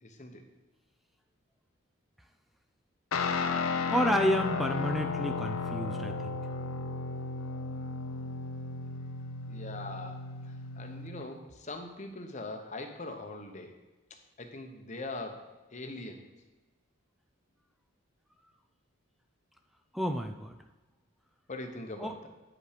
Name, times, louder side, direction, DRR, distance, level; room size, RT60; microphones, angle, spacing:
voice 1, 0.0-0.5 9.5-13.8 14.1-16.3 21.5-22.3, left 2 dB, 35° left, 4 dB, 0.9 m, -42 dB
Guitar, 3.1-11.3, left 4 dB, 80° left, 0.6 m, -34 dB
voice 2, 3.9-6.3 19.9-20.6 22.0-22.1, equal, ahead, 6 dB, 0.4 m, -30 dB
9.4 x 5.5 x 5.0 m, 1.2 s
head